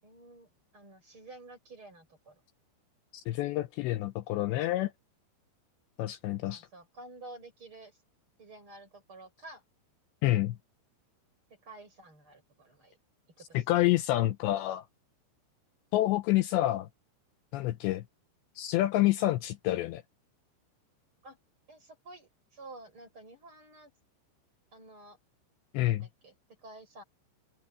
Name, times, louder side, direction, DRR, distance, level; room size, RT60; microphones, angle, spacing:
voice 1, 0.0-2.4 6.2-8.0 8.4-9.6 11.5-13.0 13.4-13.6 21.2-21.4 21.7-23.9 24.7-25.2 25.8-27.0, right 2 dB, 25° right, 8.5 m, -51 dB
voice 2, 3.3-4.9 6.0-6.7 10.2-10.6 13.5-14.9 15.9-16.9 17.5-18.0 18.6-20.0 25.7-26.1, left 15 dB, 90° left, 2.5 m, -28 dB
omnidirectional pair, 5.9 m